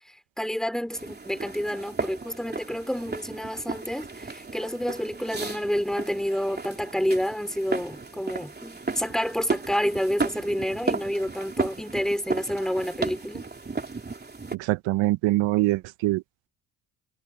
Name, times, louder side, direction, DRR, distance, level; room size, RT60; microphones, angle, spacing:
voice 1, 0.4-13.5, equal, ahead, 3.2 m, -29 dB
sound 1, 0.9-14.5, right 3 dB, 20° right, 3.2 m, -34 dB
voice 2, 14.5-16.2, right 18 dB, 80° right, 0.7 m, -24 dB
cardioid pair, 80°, 45 cm